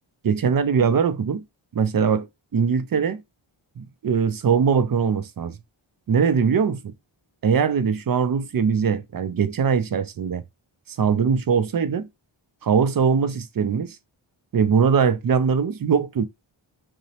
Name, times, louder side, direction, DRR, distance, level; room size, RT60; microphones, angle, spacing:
voice 1, 0.2-1.4 1.7-2.3 2.5-3.2 3.8-5.6 6.1-6.9 7.4-10.4 10.9-12.1 12.6-14.0 14.5-16.2, right 6 dB, 45° right, 0.5 m, -21 dB
2.8 x 2.0 x 2.7 m
wide cardioid pair, 45°, 50 cm